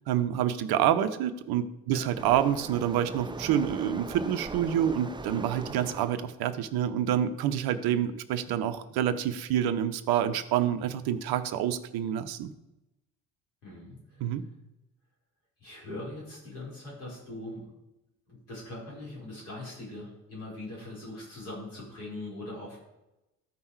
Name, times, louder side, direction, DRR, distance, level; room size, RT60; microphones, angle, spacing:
voice 1, 0.1-12.5 14.2-14.4, right 10 dB, 55° right, 11 dB, 0.8 m, -27 dB
Waves surf, 2.2-6.1, right 3 dB, 10° right, 0.6 m, -40 dB
voice 2, 13.6-14.3 15.6-17.7 18.3-22.8, left 1 dB, 80° left, -5 dB, 4.3 m, -41 dB
13.5 x 5.4 x 4.7 m, 0.94 s
figure-of-eight pair, 50°, 44 cm